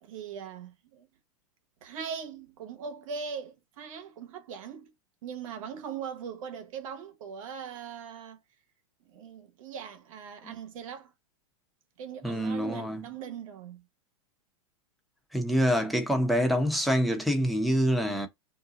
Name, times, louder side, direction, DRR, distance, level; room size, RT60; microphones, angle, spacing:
voice 1, 0.0-1.1 1.8-4.9 5.2-8.4 9.0-11.1 12.0-13.9, right 7 dB, 65° right, 1.0 m, -40 dB
voice 2, 12.2-13.0 15.3-18.3, equal, ahead, 0.8 m, -26 dB
2.7 x 2.3 x 3.8 m
hypercardioid pair, 120°, 18 cm